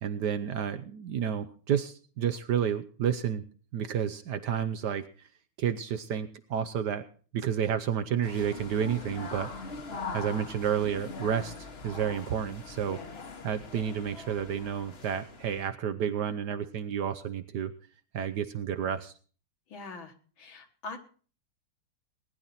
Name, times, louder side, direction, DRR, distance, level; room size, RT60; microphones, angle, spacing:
voice 1, 0.0-3.4 3.7-5.1 5.6-7.0 7.3-9.5 10.1-13.0 13.4-17.7 18.1-19.1, right 8 dB, 65° right, 9 dB, 1.1 m, -30 dB
sound 1, 8.2-15.7, left 4 dB, 35° left, 1.1 m, -42 dB
voice 2, 12.9-13.2 19.7-21.0, left 3 dB, 65° left, 4 dB, 2.2 m, -43 dB
19.0 x 10.5 x 4.2 m, 0.41 s
omnidirectional pair, 2.4 m